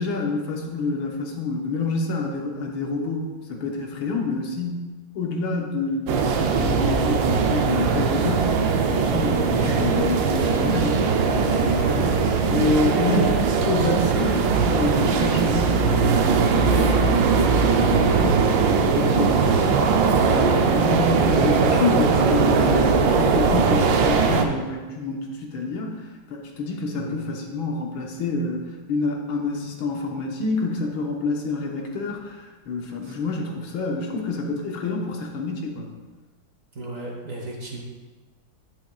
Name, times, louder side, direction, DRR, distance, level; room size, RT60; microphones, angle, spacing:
voice 1, 0.0-35.9, left 3 dB, 90° left, 0 dB, 1.9 m, -28 dB
sound 1, 6.1-24.4, right 5 dB, 75° right, 1.3 m, -20 dB
voice 2, 9.6-10.0 11.5-11.8 13.1-13.8 26.9-27.3 33.0-33.1 36.7-37.8, right 2 dB, 45° right, -1 dB, 1.4 m, -34 dB
9.9 x 7.8 x 2.3 m, 1.3 s
omnidirectional pair, 2.2 m